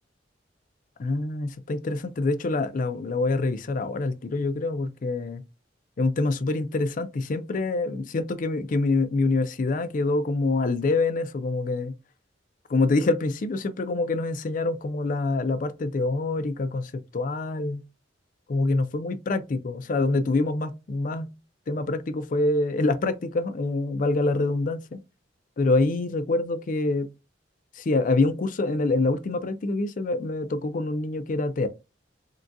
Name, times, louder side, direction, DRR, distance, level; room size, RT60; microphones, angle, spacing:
voice 1, 1.0-5.4 6.0-11.9 12.7-17.8 18.5-21.3 21.7-25.0 25.6-27.1 27.8-31.7, left 2 dB, 45° left, 0.4 m, -26 dB
3.7 x 2.3 x 2.5 m
head